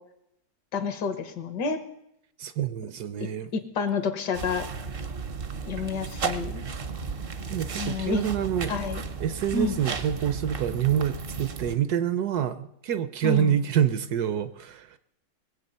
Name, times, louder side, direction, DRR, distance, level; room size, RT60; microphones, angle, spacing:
voice 1, 0.7-1.8 3.5-4.7 5.7-6.6 7.8-8.2 8.7-9.0 9.5-9.7 13.2-13.6, left 5 dB, 70° left, 8 dB, 1.7 m, -29 dB
voice 2, 2.4-3.5 7.5-8.7 9.2-15.0, right 9 dB, 70° right, 12 dB, 1.1 m, -27 dB
sound 1, 4.3-11.7, right 5 dB, 50° right, 0.7 m, -34 dB
21.5 x 7.8 x 5.5 m, 0.79 s
omnidirectional pair, 1.9 m